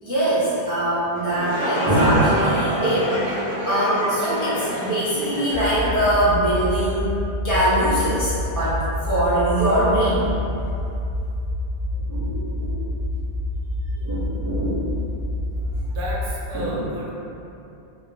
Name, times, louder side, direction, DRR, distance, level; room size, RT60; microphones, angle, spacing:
voice 1, 0.0-7.1 7.4-10.3 11.9-12.8 14.0-14.8 16.5-16.7, right 1 dB, 30° right, -13 dB, 0.4 m, -22 dB
sound 1, 1.2-6.9, equal, 80° left, 1.0 m, -27 dB
sound 2, 1.9-6.8, right 1 dB, 90° right, 0.9 m, -34 dB
sound 3, 5.5-16.3, left 1 dB, 50° left, 0.5 m, -27 dB
voice 2, 15.6-17.1, equal, 60° right, -4 dB, 0.7 m, -32 dB
2.5 x 2.0 x 3.0 m, 2.8 s
omnidirectional pair, 1.1 m